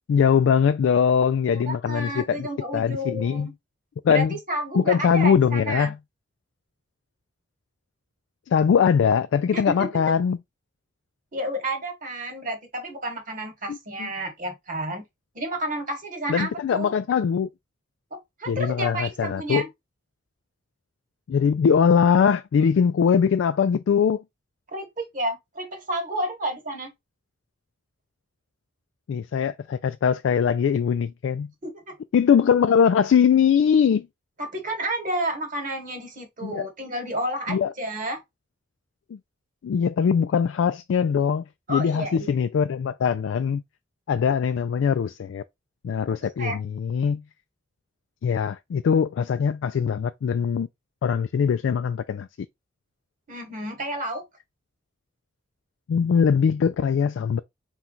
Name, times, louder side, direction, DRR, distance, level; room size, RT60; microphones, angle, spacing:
voice 1, 0.1-2.5 2.7-3.5 4.0-4.4 4.7-6.0 8.5-10.4 13.7-14.1 16.3-17.5 18.5-19.6 21.3-24.2 29.1-31.5 32.1-34.1 36.4-36.7 37.5-37.7 39.1-39.2 39.6-43.6 44.1-45.4 45.8-47.2 48.2-50.7 51.0-52.3 55.9-57.4, left 7 dB, 80° left, 0.3 m, -21 dB
voice 2, 1.5-3.5 4.1-5.9 9.5-10.0 11.3-15.0 15.3-16.9 18.1-19.7 24.7-26.9 31.6-31.9 34.4-38.2 41.7-42.4 46.4-46.6 53.3-54.2, right 1 dB, 45° right, 1.2 m, -31 dB
4.3 x 2.3 x 3.7 m
head